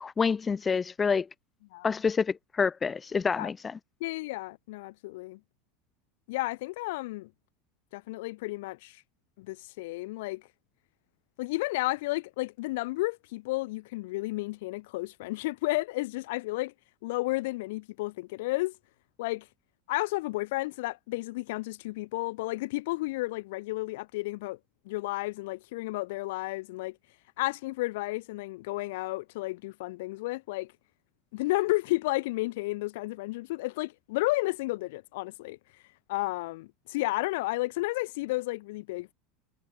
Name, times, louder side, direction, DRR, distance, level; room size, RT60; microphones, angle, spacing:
voice 1, 0.0-1.3 1.8-3.7, left 5 dB, 15° left, 0.8 m, -27 dB
voice 2, 4.0-5.4 6.3-7.3 7.9-9.0 9.4-10.4 11.4-16.7 17.0-18.8 19.2-19.5 19.9-24.6 24.8-27.0 27.4-30.7 31.3-35.6 36.1-39.1, left 20 dB, 75° left, 4.3 m, -32 dB
supercardioid pair, 160°, 0 cm